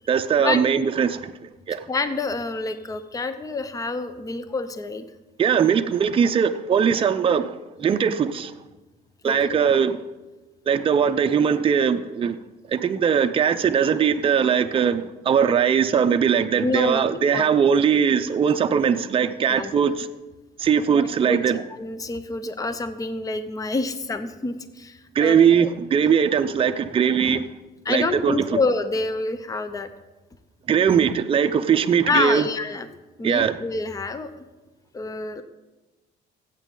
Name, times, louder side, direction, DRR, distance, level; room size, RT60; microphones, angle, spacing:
voice 1, 0.1-1.9 5.4-8.5 9.2-10.0 10.7-12.4 12.7-20.1 20.6-21.6 25.1-27.5 27.9-28.4 30.7-32.5 33.2-33.6, right 7 dB, 30° right, 0.6 m, -20 dB
voice 2, 1.9-5.0 9.2-9.4 16.6-17.5 19.5-19.7 20.9-25.7 27.8-29.9 32.1-32.9 33.2-34.3 34.9-35.4, left 3 dB, 20° left, 0.7 m, -27 dB
14.5 x 8.2 x 3.8 m
cardioid pair, 110°, 17 cm